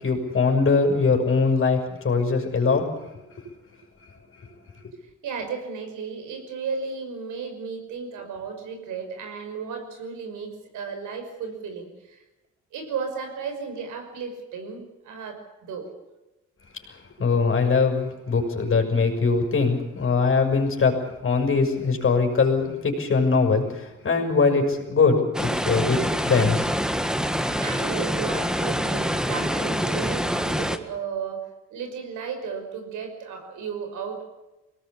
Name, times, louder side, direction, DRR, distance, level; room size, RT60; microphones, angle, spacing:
voice 1, 0.0-1.8 2.0-2.9 17.2-20.9 21.2-26.7, left 4 dB, 45° left, 3 dB, 6.4 m, -21 dB
voice 2, 5.2-12.2 12.7-15.9 27.6-31.4 31.7-34.2, right 5 dB, 85° right, 5 dB, 5.7 m, -34 dB
sound 1, 25.3-30.8, equal, ahead, 1.7 m, -26 dB
23.0 x 19.0 x 8.5 m, 1.0 s
cardioid pair, 90°, 30 cm